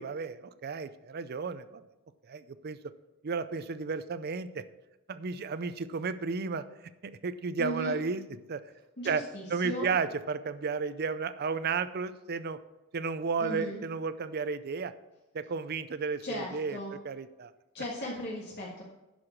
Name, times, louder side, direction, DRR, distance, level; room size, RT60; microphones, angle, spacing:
voice 1, 0.0-1.8 2.3-2.8 3.2-4.6 5.1-6.6 7.0-8.2 8.5-8.6 9.0-9.2 9.5-12.6 12.9-14.9 15.3-16.8 17.0-17.5, right 5 dB, 45° right, 12 dB, 0.5 m, -33 dB
voice 2, 7.6-8.0 9.0-9.9 13.4-13.8 16.2-16.9 17.7-18.8, equal, 50° left, -4 dB, 1.7 m, -37 dB
11.5 x 4.8 x 7.3 m, 1.0 s
head